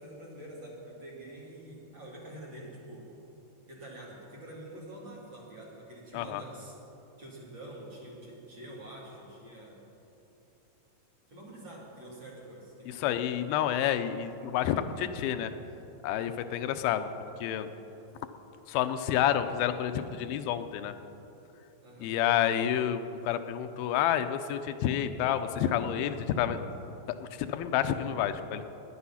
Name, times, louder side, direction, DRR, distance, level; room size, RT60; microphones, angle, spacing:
voice 1, 0.0-3.1 3.7-6.7 7.2-9.8 11.3-13.1 21.8-22.1 27.5-27.6, right 1 dB, 35° right, -4 dB, 2.8 m, -46 dB
voice 2, 12.9-15.5 16.0-17.1 17.4-17.7 18.7-20.9 22.0-26.6 27.1-28.6, left 10 dB, 90° left, 10 dB, 2.5 m, -29 dB
17.5 x 10.5 x 5.7 m, 3.0 s
omnidirectional pair, 4.2 m